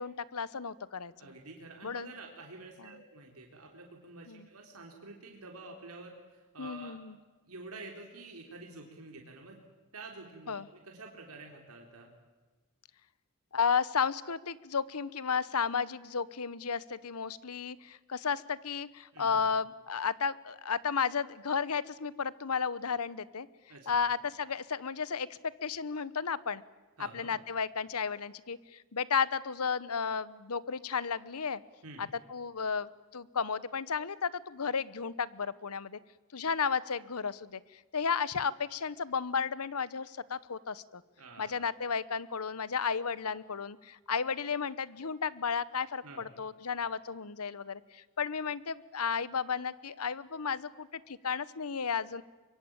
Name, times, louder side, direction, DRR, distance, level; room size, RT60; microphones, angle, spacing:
voice 1, 0.0-1.3 1.8-2.1 2.8-2.9 4.3-4.5 6.6-7.2 10.5-10.7 13.5-23.5 23.9-25.3 25.6-26.6 27.1-31.6 32.0-36.0 36.3-37.6 37.9-41.0 41.4-52.2, left 6 dB, 85° left, 18 dB, 1.0 m, -33 dB
voice 2, 1.2-7.0 7.5-9.6 9.9-12.1 19.1-19.4 23.7-24.0 27.0-27.3 31.8-32.1 41.2-41.6 46.0-46.3, right 3 dB, 85° right, 1 dB, 3.6 m, -48 dB
24.5 x 23.0 x 8.8 m, 1.2 s
head